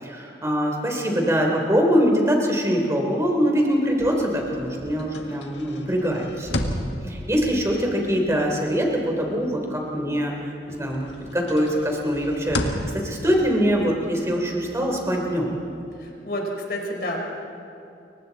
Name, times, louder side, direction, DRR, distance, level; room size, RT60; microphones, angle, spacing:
voice 1, 0.0-15.5, equal, 15° right, 0 dB, 3.5 m, -23 dB
sound 1, 3.9-10.4 10.7-16.1, left 1 dB, 90° left, 1.8 m, -35 dB
voice 2, 16.0-17.2, left 1 dB, 60° left, 0 dB, 4.3 m, -29 dB
29.5 x 24.0 x 4.1 m, 2.7 s
head